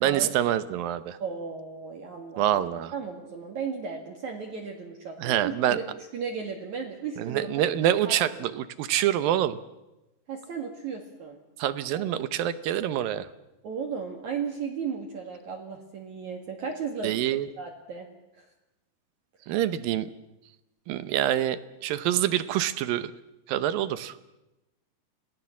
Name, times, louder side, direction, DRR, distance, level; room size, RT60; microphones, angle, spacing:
voice 1, 0.0-1.2 2.4-2.9 5.2-5.8 7.2-9.6 11.6-13.3 17.0-17.5 19.5-20.1 20.9-23.1 23.5-24.2, right 12 dB, 70° right, 13 dB, 2.5 m, -26 dB
voice 2, 1.2-2.6 2.9-5.9 6.1-7.5 8.1-8.4 10.3-11.4 11.9-12.1 12.3-12.4 13.6-18.1 18.3-18.4, right 6 dB, 50° right, 1 dB, 3.0 m, -35 dB
28.5 x 18.5 x 7.3 m, 0.97 s
omnidirectional pair, 4.6 m